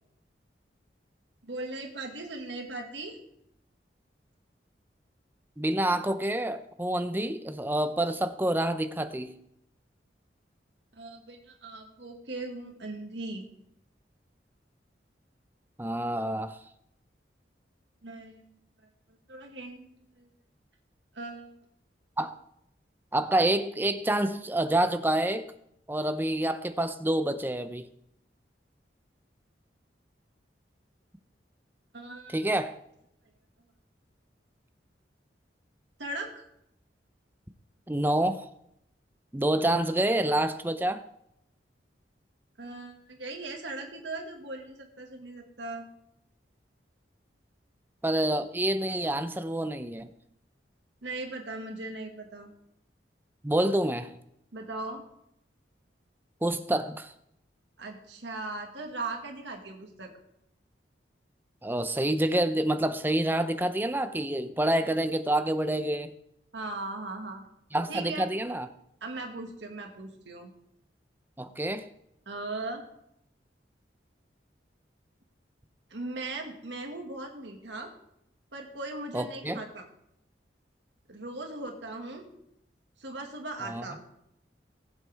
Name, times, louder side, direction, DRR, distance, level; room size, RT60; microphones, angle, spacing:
voice 1, 1.4-3.2 10.9-13.5 18.0-18.5 19.3-19.9 20.2-20.3 21.1-21.5 31.9-32.4 36.0-36.4 42.6-45.9 51.0-52.5 54.5-55.0 57.8-60.1 66.5-67.4 67.9-68.2 69.0-70.5 72.3-72.8 75.9-77.9 78.5-79.9 81.1-82.4 83.0-84.0, right 2 dB, 80° right, 2 dB, 1.9 m, -38 dB
voice 2, 5.6-9.3 15.8-16.6 22.2-22.3 23.1-25.5 25.9-27.9 32.3-32.8 37.9-38.5 39.3-41.0 48.0-50.1 53.4-54.1 56.4-57.1 61.6-66.1 67.7-68.7 71.4-71.9 79.1-79.6 83.6-83.8, right 1 dB, 10° right, 10 dB, 0.6 m, -27 dB
19.5 x 7.6 x 3.5 m, 0.77 s
head